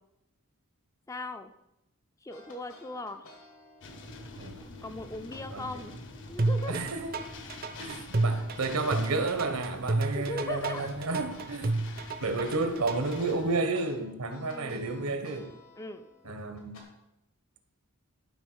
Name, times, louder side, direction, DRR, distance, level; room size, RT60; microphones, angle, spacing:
voice 1, 1.1-1.5 2.2-3.2 4.8-5.9 6.3-6.8 10.1-10.9 11.9-12.1 14.5-14.9 15.8-16.1, left 2 dB, 15° left, 9 dB, 0.4 m, -39 dB
sound 1, 2.3-4.7 5.3-5.5 5.9-11.5 11.9-16.8, left 2 dB, 75° left, 2.1 m, -54 dB
sound 2, 3.8-13.6, left 2 dB, 55° left, 0.9 m, -47 dB
sound 3, 6.4-13.2, right 2 dB, 40° right, 0.5 m, -30 dB
voice 2, 6.7-7.1 7.8-11.8 12.2-15.5 16.2-16.8, right 3 dB, 85° right, 8 dB, 1.2 m, -31 dB
12.0 x 4.1 x 6.3 m, 0.88 s
head